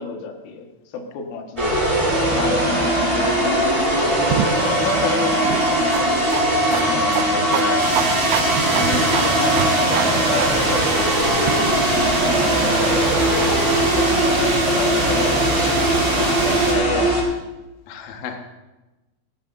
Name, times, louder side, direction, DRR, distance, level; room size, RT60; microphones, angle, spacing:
voice 1, 0.0-1.9 2.3-4.4 4.8-6.3 7.3-7.7 8.7-13.5 13.9-15.7 16.1-17.2, left 5 dB, 80° left, 2 dB, 4.1 m, -31 dB
sound 1, 1.6-17.2, right 1 dB, 10° right, 3.3 m, -20 dB
sound 2, 4.3-11.5, right 9 dB, 80° right, 3.0 m, -28 dB
voice 2, 6.7-7.9 13.9-14.1 15.6-15.7 16.1-17.1 17.9-18.4, left 5 dB, 65° left, 3 dB, 1.8 m, -30 dB
sound 3, 7.8-16.7, right 3 dB, 60° right, 5.5 m, -25 dB
19.5 x 17.0 x 2.7 m, 1.1 s
omnidirectional pair, 5.5 m